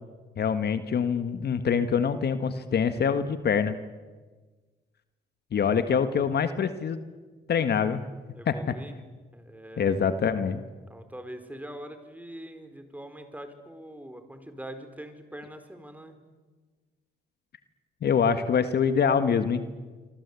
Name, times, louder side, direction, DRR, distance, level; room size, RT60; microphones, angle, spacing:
voice 1, 0.4-3.8 5.5-7.0 7.5-8.0 8.5-8.6 9.8-10.6 18.0-19.6, left 6 dB, 55° left, 10 dB, 1.6 m, -25 dB
voice 2, 8.3-9.0 9.3-10.0 10.9-16.2, right 1 dB, 10° right, 8 dB, 4.3 m, -43 dB
27.0 x 24.0 x 8.5 m, 1.4 s
cardioid pair, 90°, 20 cm